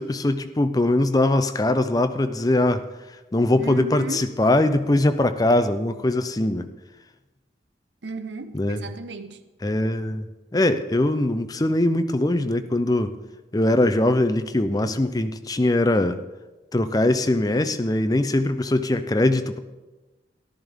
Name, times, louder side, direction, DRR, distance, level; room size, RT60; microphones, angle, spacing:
voice 1, 0.0-2.8 3.3-6.7 8.5-8.8 9.6-10.3 10.5-13.1 13.5-16.2 16.7-19.6, left 1 dB, 20° left, 0.5 m, -21 dB
voice 2, 3.5-4.3 8.0-9.4, right 3 dB, 85° right, 0.8 m, -34 dB
14.0 x 12.0 x 3.6 m
head